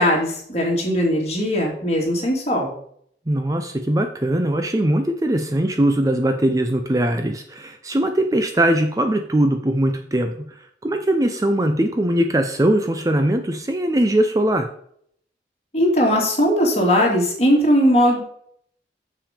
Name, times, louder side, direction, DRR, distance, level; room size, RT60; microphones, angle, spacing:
voice 1, 0.0-2.7 15.7-18.2, equal, 35° left, -1 dB, 2.5 m, -19 dB
voice 2, 3.3-10.3 10.8-14.7, right 1 dB, 20° right, 6 dB, 0.5 m, -20 dB
7.0 x 5.8 x 5.1 m, 0.65 s
head